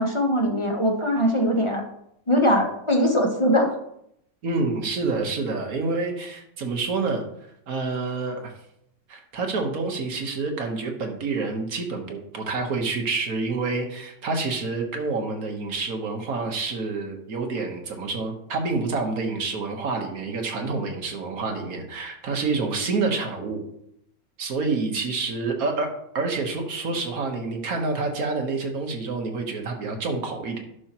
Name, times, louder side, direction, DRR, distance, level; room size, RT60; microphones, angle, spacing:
voice 1, 0.0-1.8 2.3-3.7, equal, 30° left, 1 dB, 0.5 m, -21 dB
voice 2, 4.4-7.2 7.7-8.5 9.1-23.6 24.4-30.6, right 3 dB, 55° right, 3 dB, 1.6 m, -28 dB
11.5 x 5.7 x 3.0 m, 0.76 s
omnidirectional pair, 2.0 m